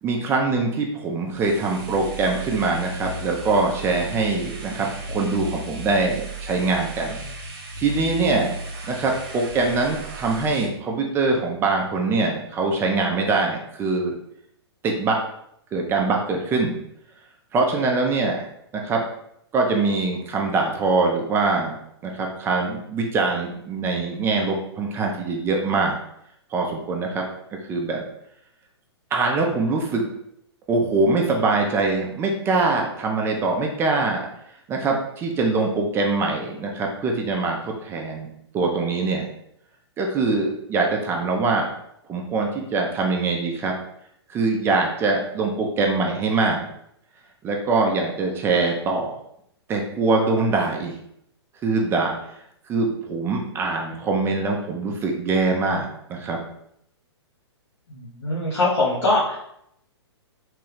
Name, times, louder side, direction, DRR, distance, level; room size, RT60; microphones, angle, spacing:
voice 1, 0.0-7.2 7.8-8.5 8.9-14.1 14.8-15.2 15.7-16.7 17.5-18.5 18.7-19.0 19.5-26.0 26.5-27.3 27.7-28.0 29.1-30.0 30.7-34.3 34.7-38.3 38.5-39.3 40.0-41.7 42.1-43.7 44.3-46.6 47.4-49.2 49.7-50.9 51.6-52.1 52.7-56.4, right 3 dB, 15° right, 1 dB, 0.4 m, -23 dB
sound 1, 1.3-10.7, right 1 dB, 45° right, 0.8 m, -35 dB
voice 2, 57.9-59.4, left 2 dB, 75° left, -6 dB, 0.9 m, -22 dB
3.1 x 2.3 x 3.1 m, 0.74 s
hypercardioid pair, 120°, 14 cm